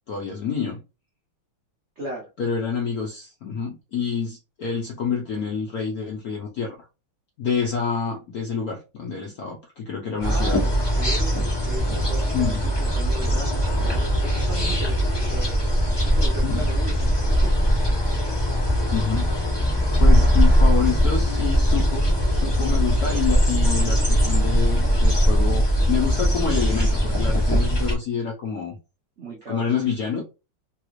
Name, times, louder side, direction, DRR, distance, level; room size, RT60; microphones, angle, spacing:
voice 1, 0.1-0.8 2.4-6.8 7.4-10.6 12.3-12.6 16.4-16.7 18.9-19.3 20.0-28.8 29.5-30.2, left 6 dB, 70° left, -1 dB, 0.8 m, -27 dB
voice 2, 2.0-2.3 10.2-10.6 11.0-15.5 16.0-17.7 29.2-29.7, right 3 dB, 75° right, -2 dB, 0.6 m, -36 dB
sound 1, 10.2-27.9, equal, 40° left, 0.3 m, -20 dB
3.4 x 2.4 x 3.0 m, 0.29 s
omnidirectional pair, 2.3 m